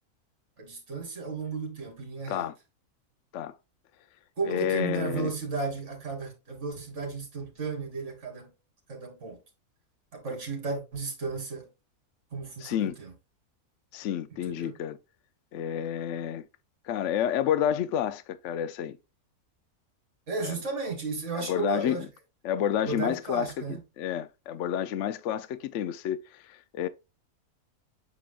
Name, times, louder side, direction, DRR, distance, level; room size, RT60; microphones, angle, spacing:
voice 1, 0.6-2.5 4.4-8.5 8.9-9.4 10.1-11.7 12.3-13.1 14.5-14.7 20.3-22.1 22.8-23.8, right 4 dB, 50° right, 2.7 m, -34 dB
voice 2, 4.5-5.3 12.6-13.0 13.9-15.0 15.5-16.4 16.8-19.0 20.4-20.6 21.3-22.0 22.4-23.5 24.0-26.9, left 10 dB, 65° left, 0.8 m, -29 dB
8.5 x 4.9 x 2.3 m
omnidirectional pair, 1.6 m